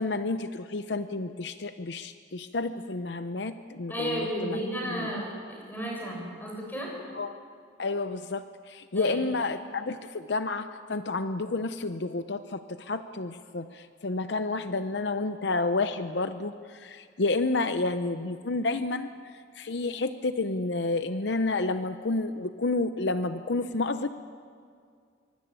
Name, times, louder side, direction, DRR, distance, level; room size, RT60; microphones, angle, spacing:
voice 1, 0.0-5.2 7.1-7.4 7.8-19.1 19.6-24.2, left 3 dB, 65° left, 10 dB, 0.7 m, -30 dB
voice 2, 3.9-6.9 8.9-9.2, equal, 10° left, -2 dB, 7.3 m, -33 dB
24.0 x 24.0 x 8.9 m, 2.2 s
head